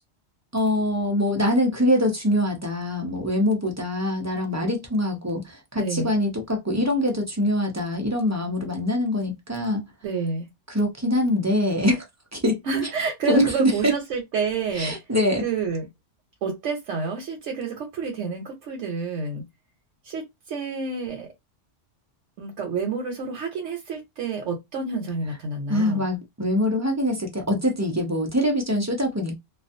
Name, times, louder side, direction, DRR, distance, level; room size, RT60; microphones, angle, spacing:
voice 1, 0.5-9.8 10.7-12.0 12.3-12.6 13.3-13.9 14.8-15.4 25.7-29.4, left 1 dB, 20° right, 0.4 m, -24 dB
voice 2, 5.8-6.1 10.0-10.5 12.6-14.9 15.4-15.8 16.4-19.4 20.0-21.3 22.4-26.0, right 4 dB, 90° right, 1.0 m, -29 dB
2.4 x 2.2 x 2.5 m
omnidirectional pair, 1.2 m